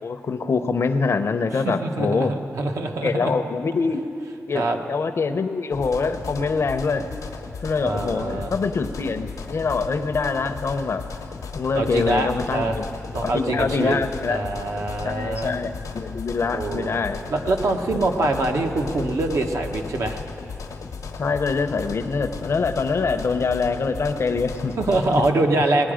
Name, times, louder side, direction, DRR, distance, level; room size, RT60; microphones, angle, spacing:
voice 1, 0.0-2.3 3.0-4.0 4.5-7.1 7.6-11.0 11.5-12.8 13.2-14.4 15.0-17.2 21.2-24.7, left 4 dB, 55° left, 9 dB, 0.7 m, -24 dB
voice 2, 1.6-2.3 2.5-3.3 4.5-4.8 7.8-8.5 11.7-12.8 13.1-14.0 14.3-15.5 16.4-17.0 17.3-20.2 24.8-25.9, right 2 dB, 65° right, 3 dB, 1.0 m, -24 dB
sound 1, 5.7-25.3, left 4 dB, 85° left, 1.0 m, -35 dB
19.0 x 9.9 x 5.0 m, 2.7 s
wide cardioid pair, 115°, 5 cm